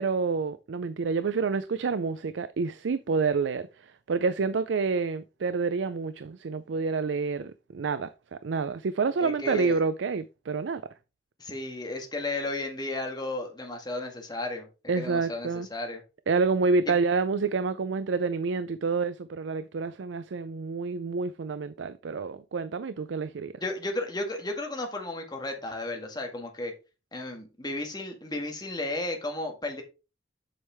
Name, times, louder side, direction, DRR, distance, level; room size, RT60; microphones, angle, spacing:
voice 1, 0.0-3.7 4.1-10.8 14.9-15.7 16.3-23.5, right 4 dB, 80° right, 0.4 m, -28 dB
voice 2, 9.2-9.8 11.4-14.7 14.9-16.0 23.6-26.7 27.1-29.8, left 2 dB, 20° left, 1.8 m, -34 dB
7.6 x 6.4 x 3.4 m
head